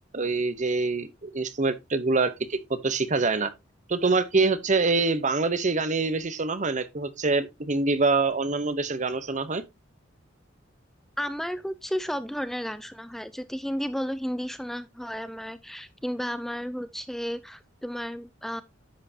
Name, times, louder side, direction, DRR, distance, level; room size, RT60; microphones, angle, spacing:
voice 1, 0.1-3.5 3.9-9.6, right 3 dB, 40° right, 0.9 m, -25 dB
voice 2, 11.2-18.6, equal, ahead, 0.4 m, -33 dB
10.5 x 7.5 x 2.8 m
head